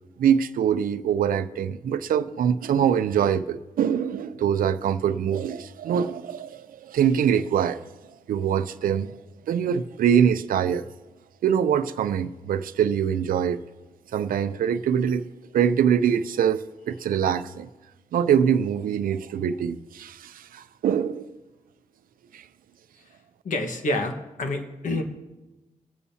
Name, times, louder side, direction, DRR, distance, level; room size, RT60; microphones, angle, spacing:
voice 1, 0.2-7.8 8.3-9.1 9.5-10.8 11.4-13.6 14.1-15.2 15.5-17.7 18.1-21.3 22.3-22.4, right 8 dB, 90° right, 0.5 m, -24 dB
voice 2, 23.4-25.0, left 2 dB, 65° left, 1.3 m, -28 dB
23.0 x 8.6 x 2.8 m
cardioid pair, 105°, 14 cm